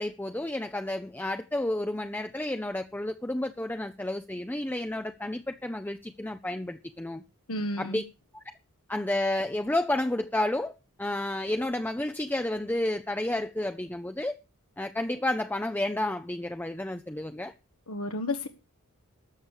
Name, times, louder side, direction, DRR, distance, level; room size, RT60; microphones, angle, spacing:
voice 1, 0.0-7.2 7.8-8.0 8.9-10.7 11.0-14.4 14.8-17.5, left 1 dB, 10° left, 0.6 m, -31 dB
voice 2, 7.5-8.0 17.9-18.5, left 1 dB, 85° left, 1.5 m, -32 dB
13.0 x 7.4 x 6.6 m
head